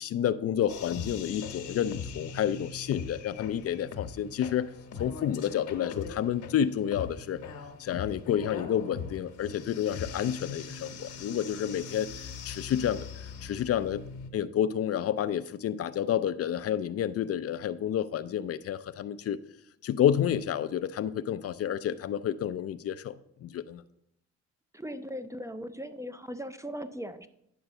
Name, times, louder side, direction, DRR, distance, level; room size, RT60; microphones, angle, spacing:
voice 1, 0.0-4.7 5.0-7.4 7.8-13.1 13.4-14.0 14.3-19.4 19.8-23.1 23.4-23.8, left 9 dB, 50° left, 13 dB, 0.4 m, -30 dB
sound 1, 0.7-14.3, left 6 dB, 75° left, 1.1 m, -41 dB
voice 2, 24.7-27.3, equal, 10° right, 11 dB, 0.4 m, -38 dB
10.0 x 3.9 x 6.6 m, 0.77 s
cardioid pair, 90°, 30 cm